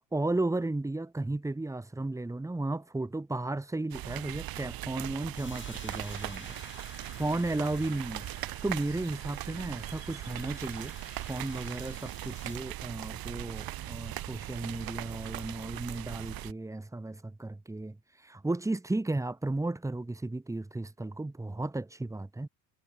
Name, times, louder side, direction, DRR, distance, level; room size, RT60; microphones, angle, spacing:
voice 1, 0.1-6.6 7.1-10.9 11.3-22.5, right 2 dB, 5° right, 1.3 m, -34 dB
sound 1, 3.9-16.5, right 15 dB, 50° right, 1.2 m, -40 dB
sound 2, 5.4-12.6, left 5 dB, 25° left, 5.9 m, -52 dB
supercardioid pair, 100°, 47 cm